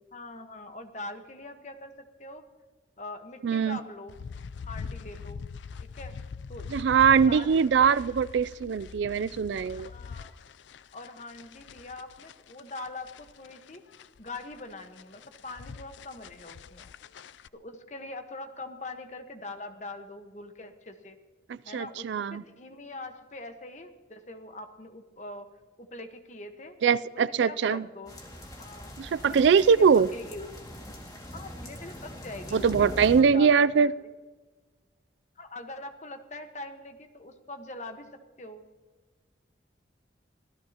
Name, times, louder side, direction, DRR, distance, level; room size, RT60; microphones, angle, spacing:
voice 1, 0.1-2.4 3.0-4.1 4.6-5.4 5.8-6.1 6.5-8.0 9.7-10.3 10.9-13.8 14.2-16.9 17.5-21.2 21.6-25.5 25.8-26.8 27.1-28.1 28.6-28.9 29.3-30.5 31.3-33.9 35.4-38.6, left 2 dB, 40° left, 7 dB, 1.2 m, -43 dB
voice 2, 3.4-3.8 6.7-9.9 21.5-22.4 26.8-27.9 29.0-30.1 32.5-33.9, right 6 dB, 70° right, 19 dB, 0.3 m, -22 dB
sound 1, 4.1-17.5, left 5 dB, 75° left, 0.4 m, -43 dB
sound 2, 28.1-33.2, equal, 20° left, 2.1 m, -42 dB
25.5 x 15.5 x 2.9 m, 1.3 s
head